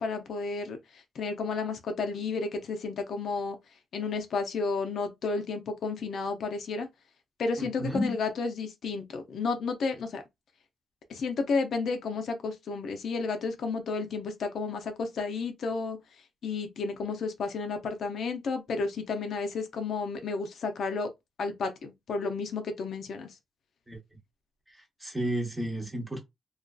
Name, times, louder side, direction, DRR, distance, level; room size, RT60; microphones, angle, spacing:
voice 1, 0.0-3.6 3.9-6.9 7.4-10.2 11.1-16.0 16.4-21.1 21.4-23.4, left 4 dB, 60° left, 0.4 m, -32 dB
voice 2, 7.6-8.2 23.9-24.0 24.7-26.2, equal, 10° right, 0.8 m, -32 dB
2.5 x 2.3 x 2.2 m
cardioid pair, 135°, 0 cm